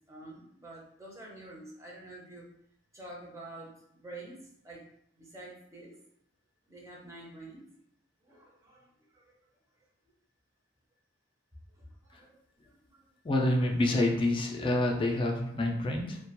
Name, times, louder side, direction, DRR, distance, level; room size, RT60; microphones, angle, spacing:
voice 1, 0.1-2.5 2.9-3.7 4.0-4.8 5.2-6.0 6.7-7.6 8.2-8.9 9.1-9.3 11.8-13.0, right 2 dB, 15° right, -3 dB, 0.6 m, -48 dB
voice 2, 13.2-16.2, left 1 dB, 25° left, 1 dB, 0.4 m, -27 dB
2.3 x 2.1 x 2.9 m, 0.73 s
head